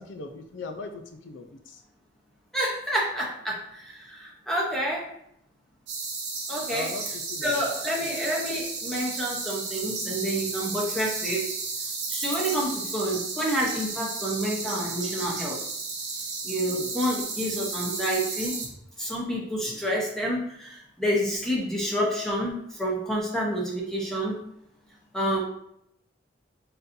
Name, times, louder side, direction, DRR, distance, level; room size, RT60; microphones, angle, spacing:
voice 1, 0.0-1.8 6.7-7.7 8.0-8.2 16.6-17.0, left 3 dB, 70° left, 5 dB, 0.5 m, -39 dB
voice 2, 2.5-5.1 6.5-6.9 7.4-11.5 12.1-15.6 16.4-18.6 19.0-24.4 25.1-25.4, equal, ahead, -4 dB, 0.8 m, -28 dB
sound 1, 5.9-18.7, right 4 dB, 60° right, 0.9 m, -33 dB
4.2 x 3.8 x 2.6 m, 0.76 s
head